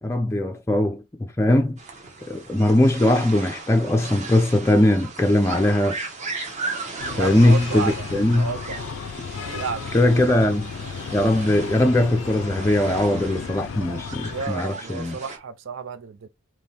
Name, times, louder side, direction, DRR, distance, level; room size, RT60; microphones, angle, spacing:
voice 1, 0.0-1.8 2.3-6.0 7.2-8.5 9.9-10.7 11.1-15.2, left 1 dB, 15° left, 0.4 m, -20 dB
sound 1, 1.8-15.4, right 3 dB, 40° right, 1.1 m, -36 dB
Breathing, 7.0-14.5, left 6 dB, 85° left, 0.4 m, -35 dB
voice 2, 7.2-8.0 8.3-8.9 9.4-9.9 14.3-16.3, right 6 dB, 85° right, 0.5 m, -32 dB
3.5 x 3.0 x 4.2 m
head